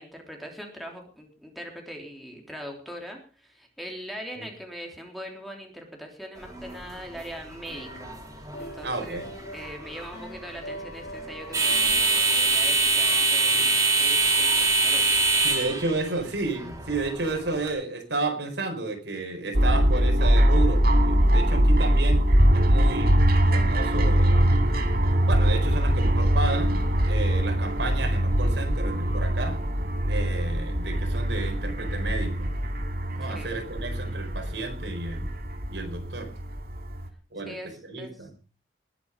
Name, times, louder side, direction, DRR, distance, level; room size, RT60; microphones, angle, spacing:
voice 1, 0.0-9.2 9.5-15.3 33.2-33.5 37.4-37.7 38.0-38.3, equal, ahead, 1 dB, 3.4 m, -41 dB
sound 1, 6.4-17.7, right 3 dB, 20° right, 4.3 m, -25 dB
sound 2, 7.7-13.6, right 1 dB, 65° left, 4.9 m, -43 dB
voice 2, 8.8-9.3 15.4-22.2 22.5-24.6 25.3-29.6 30.1-32.5 33.1-35.3 35.7-36.3 37.3-37.5 37.8-38.3, right 3 dB, 75° right, 4 dB, 4.7 m, -32 dB
sound 3, 19.5-37.1, equal, 55° right, 2.3 m, -22 dB
20.0 x 9.6 x 5.2 m, 0.37 s
head